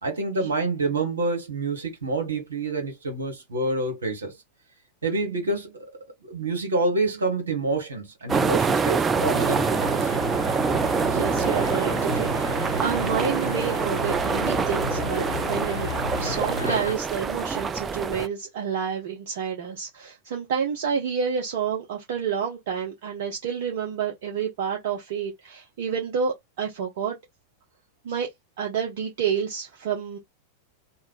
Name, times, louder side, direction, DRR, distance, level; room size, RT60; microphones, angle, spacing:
voice 1, 0.0-4.3 5.0-5.8 6.2-10.1, right 2 dB, 70° right, 1.4 m, -27 dB
sound 1, 8.3-18.3, right 5 dB, 20° right, 0.3 m, -25 dB
sound 2, 9.3-17.0, left 3 dB, 80° left, 0.5 m, -33 dB
voice 2, 11.0-15.9 16.2-27.1 28.0-28.3 28.6-30.2, right 7 dB, 55° right, 0.8 m, -29 dB
2.8 x 2.3 x 3.5 m
figure-of-eight pair, 90°, 0 cm